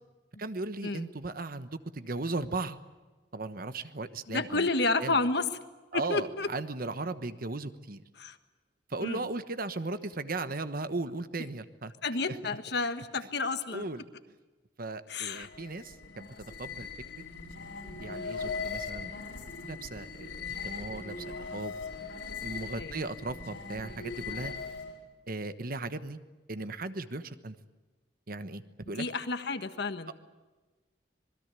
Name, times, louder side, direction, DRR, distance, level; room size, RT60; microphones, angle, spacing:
voice 1, 0.4-2.8 3.3-4.7 5.0-5.2 5.9-8.0 8.9-11.9 12.3-12.4 13.7-14.0 14.8-16.9 18.0-19.2 19.6-21.7 22.4-24.5 25.3-26.2 26.5-27.6 28.3-29.1 30.1-30.2, right 2 dB, 50° right, 11 dB, 1.2 m, -37 dB
voice 2, 4.3-5.5 5.9-6.5 8.2-8.3 9.0-9.2 12.0-13.8 15.1-15.5 22.8-23.0 29.0-30.1, left 3 dB, 60° left, 9 dB, 1.5 m, -30 dB
sound 1, 15.3-25.0, left 5 dB, 80° left, 4.6 m, -40 dB
26.0 x 20.5 x 8.3 m, 1.2 s
head